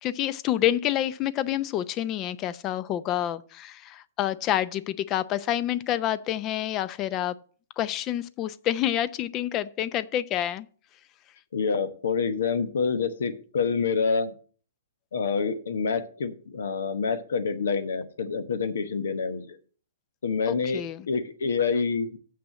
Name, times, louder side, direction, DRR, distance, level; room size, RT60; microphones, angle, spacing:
voice 1, 0.0-7.3 7.8-10.7 20.5-21.1, left 12 dB, 30° left, 0.5 m, -28 dB
voice 2, 11.5-14.3 15.1-19.6 20.2-20.8 21.1-22.2, left 5 dB, 80° left, 1.1 m, -27 dB
7.1 x 6.0 x 7.5 m
hypercardioid pair, 135°, 0 cm